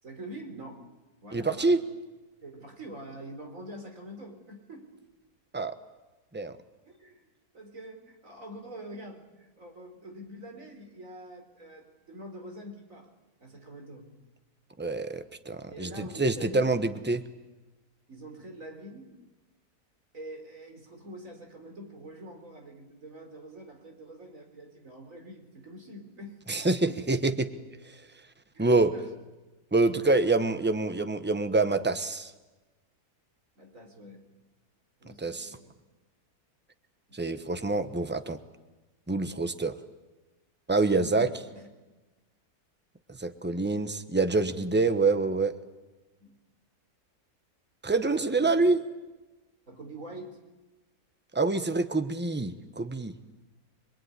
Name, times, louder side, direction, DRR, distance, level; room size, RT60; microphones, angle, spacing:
voice 1, 0.0-0.9 1.2-1.8 2.4-4.9 6.8-13.1 13.4-14.1 15.7-16.8 18.1-19.1 20.1-26.4 26.8-27.1 28.5-29.1 33.6-34.3 35.0-35.7 41.1-41.3 41.5-41.7 46.2-46.4 48.0-48.7 49.7-50.4, right 1 dB, 55° right, 3 dB, 4.4 m, -45 dB
voice 2, 1.3-1.8 5.5-5.8 6.3-6.5 14.8-17.2 26.5-27.5 28.6-28.9 29.7-32.3 35.2-35.6 37.1-38.4 39.1-39.7 40.7-41.3 43.2-45.5 47.8-48.8 51.3-53.1, right 3 dB, 10° right, 9 dB, 1.0 m, -26 dB
26.5 x 21.5 x 9.7 m, 1.2 s
omnidirectional pair, 1.6 m